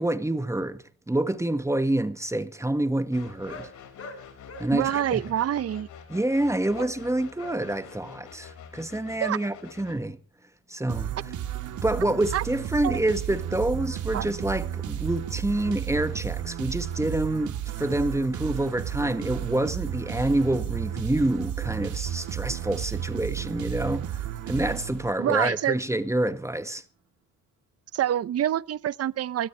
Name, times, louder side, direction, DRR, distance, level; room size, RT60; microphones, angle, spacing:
voice 1, 0.0-3.7 4.6-5.2 6.1-10.2 10.7-11.1 11.8-26.8, right 1 dB, 10° right, 1.8 m, -27 dB
sound 1, 3.1-10.0, left 7 dB, 80° left, 6.0 m, -47 dB
sound 2, 3.4-3.7 4.0-4.2 4.4-4.7 6.7-6.9 7.4-7.6, left 2 dB, 50° left, 6.4 m, -41 dB
voice 2, 4.7-5.9 9.2-9.4 12.3-12.4 12.8-13.0 14.1-14.3 25.2-25.8 27.9-29.5, right 11 dB, 55° right, 0.8 m, -26 dB
sound 3, 10.9-25.5, right 11 dB, 75° right, 3.5 m, -33 dB
24.0 x 17.5 x 3.4 m
cardioid pair, 90°, 30 cm